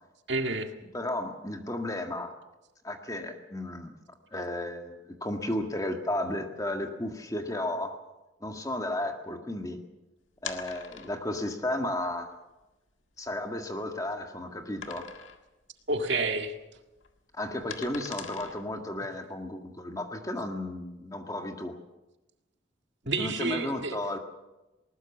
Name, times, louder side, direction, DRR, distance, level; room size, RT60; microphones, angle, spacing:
voice 1, 0.3-0.7 15.9-16.5 23.1-24.0, right 3 dB, 65° right, 5 dB, 1.9 m, -29 dB
voice 2, 0.9-2.3 2.8-4.0 4.3-8.0 8.4-9.8 10.4-12.3 13.2-15.1 17.4-21.7 23.2-24.2, left 1 dB, 20° left, 4 dB, 1.9 m, -33 dB
sound 1, 10.3-11.4 12.1-12.2 12.6-12.7 13.2-14.2 14.8-15.5 15.8-16.1 16.4-19.0, left 7 dB, 80° left, 1.8 m, -42 dB
20.0 x 20.0 x 7.2 m, 1.0 s
head